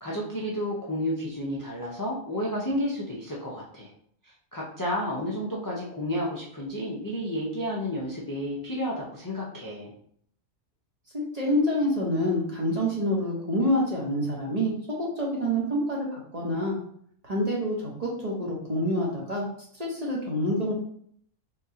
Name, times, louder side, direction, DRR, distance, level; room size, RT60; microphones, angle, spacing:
voice 1, 0.0-3.9 4.2-9.9, equal, 25° left, -4 dB, 0.4 m, -31 dB
voice 2, 11.1-16.8 17.2-19.5 19.8-20.7, equal, 35° right, -4 dB, 0.8 m, -27 dB
3.8 x 3.6 x 2.8 m, 0.64 s
omnidirectional pair, 1.4 m